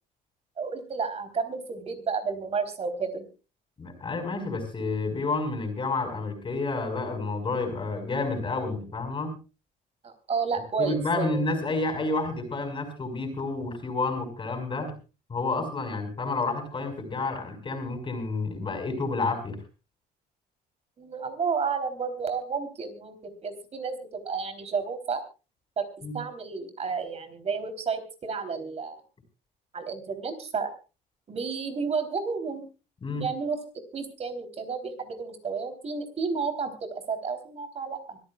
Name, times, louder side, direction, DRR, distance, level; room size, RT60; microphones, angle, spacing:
voice 1, 0.6-3.3 10.0-11.4 21.0-25.2 25.8-25.9 26.1-29.0 29.7-30.7 31.3-32.6 33.1-33.6 33.9-38.2, right 5 dB, 40° right, 8 dB, 3.8 m, -31 dB
voice 2, 3.8-9.3 10.8-14.9 15.3-19.6 26.0-26.2 33.0-33.3, left 3 dB, 30° left, 6 dB, 5.1 m, -30 dB
25.0 x 14.5 x 2.4 m, 0.33 s
cardioid pair, 110°, 17 cm